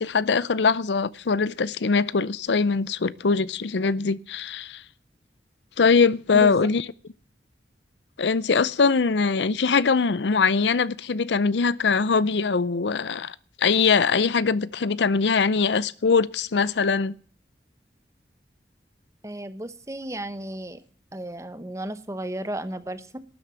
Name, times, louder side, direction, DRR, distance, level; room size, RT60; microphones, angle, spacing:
voice 1, 0.0-4.8 5.8-6.8 8.2-17.1, left 5 dB, 85° left, 0.6 m, -22 dB
voice 2, 6.3-6.7 19.2-20.8 21.1-23.2, right 1 dB, 15° right, 1.0 m, -33 dB
12.5 x 9.0 x 7.6 m
head